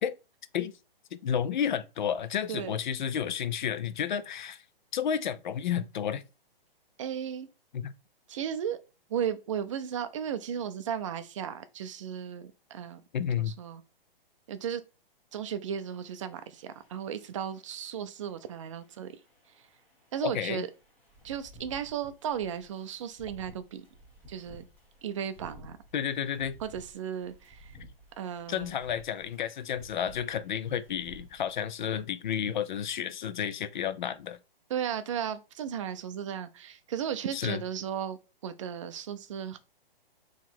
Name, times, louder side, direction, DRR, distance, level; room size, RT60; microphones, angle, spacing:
voice 1, 1.1-4.6 4.9-6.2 7.7-7.9 13.1-13.5 20.2-20.7 25.9-26.6 28.5-34.4 37.3-37.6, left 8 dB, 55° left, 0.5 m, -31 dB
voice 2, 7.0-7.5 8.3-8.8 9.1-13.0 13.4-13.8 14.5-14.8 15.3-19.2 20.1-20.7 21.2-23.8 24.3-24.6 25.0-25.8 26.6-27.7 28.2-28.8 34.7-39.6, right 8 dB, 35° right, 0.4 m, -35 dB
sound 1, 15.8-31.7, right 1 dB, 5° left, 1.0 m, -55 dB
3.7 x 3.1 x 4.5 m
hypercardioid pair, 150°, 29 cm